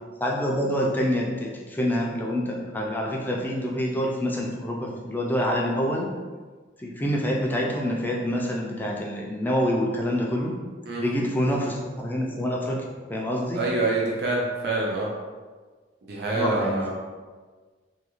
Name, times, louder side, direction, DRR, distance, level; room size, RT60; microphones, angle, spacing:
voice 1, 0.2-6.1 6.8-10.5 11.0-12.8 13.1-13.6 16.3-16.9, equal, 10° left, -2 dB, 0.3 m, -26 dB
voice 2, 13.5-15.1 16.1-16.9, right 2 dB, 60° right, -3 dB, 0.4 m, -26 dB
2.4 x 2.3 x 2.9 m, 1.4 s
head